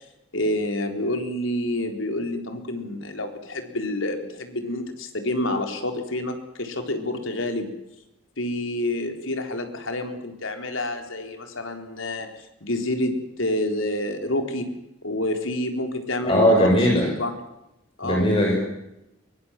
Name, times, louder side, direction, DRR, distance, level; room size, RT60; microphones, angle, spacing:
voice 1, 0.3-7.7 8.4-12.3 12.6-14.7 15.0-16.7 17.0-17.4 18.0-18.2, left 1 dB, 85° left, 6 dB, 4.2 m, -28 dB
voice 2, 16.2-17.1 18.0-18.5, equal, 25° left, -1 dB, 6.8 m, -18 dB
24.0 x 23.5 x 7.7 m, 0.87 s
head